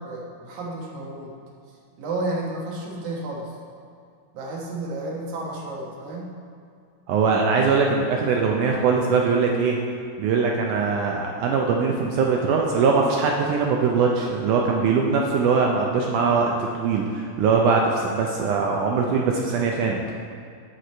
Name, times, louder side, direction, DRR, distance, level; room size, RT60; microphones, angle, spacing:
voice 1, 0.0-1.3 2.0-3.6 4.3-6.3, right 2 dB, 60° right, -3 dB, 2.5 m, -31 dB
voice 2, 7.1-9.8 10.2-20.0, right 5 dB, 80° right, 0 dB, 1.8 m, -21 dB
8.2 x 7.7 x 4.4 m, 2.3 s
omnidirectional pair, 4.2 m